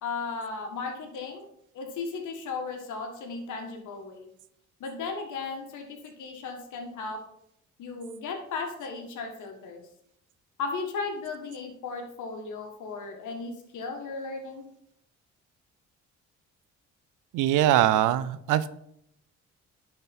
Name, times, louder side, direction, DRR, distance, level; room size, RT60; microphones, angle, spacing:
voice 1, 0.0-1.4 1.7-4.3 4.8-7.2 7.8-9.8 10.6-14.6, left 4 dB, 80° left, 4 dB, 1.7 m, -36 dB
voice 2, 17.3-18.7, right 12 dB, 90° right, 15 dB, 0.6 m, -22 dB
10.5 x 4.4 x 4.3 m, 0.73 s
cardioid pair, 90°, 30 cm